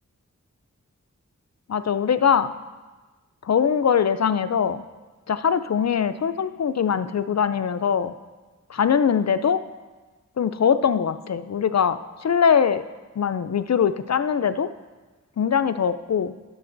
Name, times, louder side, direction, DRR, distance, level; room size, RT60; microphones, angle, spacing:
voice 1, 1.7-2.5 3.4-4.8 5.3-8.1 8.7-9.6 10.4-12.8 13.2-14.7 15.4-16.3, left 7 dB, 60° left, 12 dB, 0.4 m, -22 dB
20.0 x 6.8 x 2.6 m, 1.3 s
wide cardioid pair, 50°, 31 cm